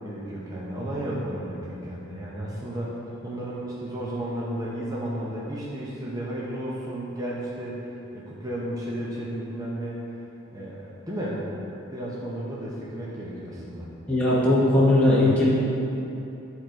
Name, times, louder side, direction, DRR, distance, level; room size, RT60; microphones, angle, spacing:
voice 1, 0.0-2.9 3.2-10.0 10.5-11.5 11.9-13.9, right 1 dB, 15° right, -6 dB, 0.8 m, -33 dB
voice 2, 14.1-15.5, left 1 dB, 5° left, -8 dB, 1.1 m, -19 dB
9.7 x 3.9 x 4.4 m, 2.9 s
head